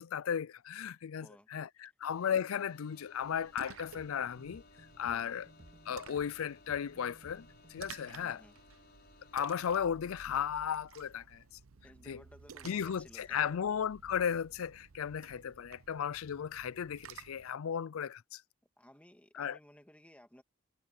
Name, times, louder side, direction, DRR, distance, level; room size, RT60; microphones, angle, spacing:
voice 1, 0.0-4.6 5.0-5.5 5.9-8.4 9.3-11.4 12.1-12.2 12.6-18.4 19.4-19.6, left 8 dB, 75° left, 0.4 m, -35 dB
voice 2, 1.1-1.5 5.0-5.3 8.0-8.6 11.8-13.6 18.8-20.4, equal, 5° left, 2.3 m, -57 dB
sound 1, 2.0-9.9, left 3 dB, 50° left, 5.4 m, -61 dB
Splash splatter, 3.2-17.5, right 6 dB, 80° right, 0.8 m, -55 dB
sound 2, 4.0-8.5, right 1 dB, 45° right, 2.2 m, -60 dB
head